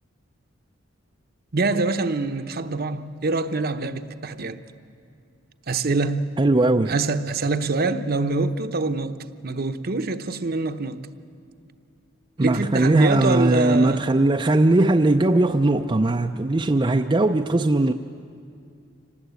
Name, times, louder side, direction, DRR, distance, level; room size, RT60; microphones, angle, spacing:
voice 1, 1.5-4.6 5.7-6.4 6.9-11.0 12.4-14.0, right 3 dB, 50° right, 0.9 m, -25 dB
voice 2, 6.4-6.9 12.4-17.9, right 2 dB, 25° right, 0.5 m, -19 dB
25.5 x 19.0 x 8.2 m
head